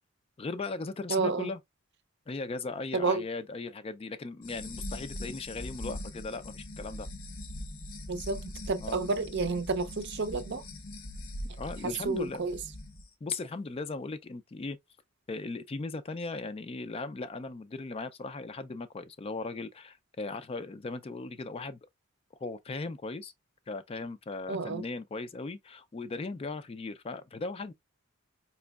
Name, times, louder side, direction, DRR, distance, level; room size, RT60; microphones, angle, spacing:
voice 1, 0.4-1.6 2.3-7.1 8.8-9.0 11.5-12.4 13.2-14.8 15.3-21.8 22.4-23.3 23.7-27.7, left 3 dB, 30° left, 0.3 m, -38 dB
voice 2, 1.1-1.5 2.9-3.2 8.1-8.4 8.7-10.6 12.0-12.6 24.5-24.8, right 4 dB, 55° right, 0.5 m, -30 dB
sound 1, 4.4-13.0, left 1 dB, 85° left, 1.0 m, -41 dB
4.3 x 3.0 x 2.3 m
head